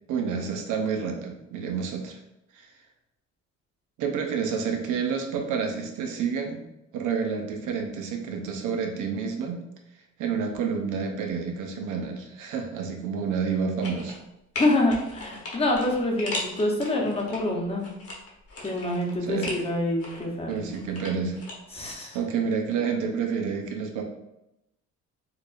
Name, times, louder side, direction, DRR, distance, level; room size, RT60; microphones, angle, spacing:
voice 1, 0.1-2.2 2.5-2.7 4.0-6.6 6.9-9.6 10.2-14.2 19.3-19.6 20.5-21.4 22.1-24.0, right 6 dB, 85° right, 3 dB, 0.7 m, -29 dB
sound 1, 13.8-14.3 14.6-17.4 17.8-19.6 20.0-21.5 21.8-21.9, left 2 dB, 50° left, 1.0 m, -37 dB
voice 2, 14.6-17.9 18.6-20.6 21.7-22.2, left 1 dB, 20° left, 0 dB, 0.8 m, -26 dB
4.5 x 2.4 x 2.5 m, 0.86 s
cardioid pair, 90°, 30 cm